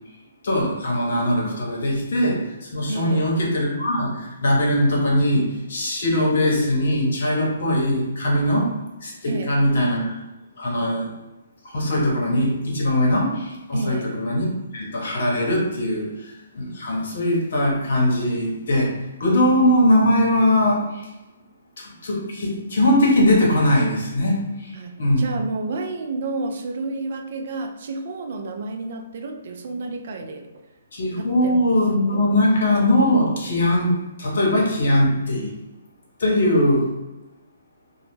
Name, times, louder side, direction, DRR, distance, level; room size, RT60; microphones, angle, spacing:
voice 1, 0.4-10.2 10.6-11.1 11.6-21.1 21.8-25.3 30.9-35.6 36.2-36.9, left 1 dB, 65° left, -2 dB, 0.8 m, -21 dB
voice 2, 2.9-3.3 9.3-9.6 13.7-14.1 24.7-30.5 31.2-31.7 32.0-32.2, right 3 dB, 55° right, 4 dB, 0.3 m, -30 dB
2.1 x 2.0 x 3.1 m, 1.0 s
figure-of-eight pair, 135°, 0 cm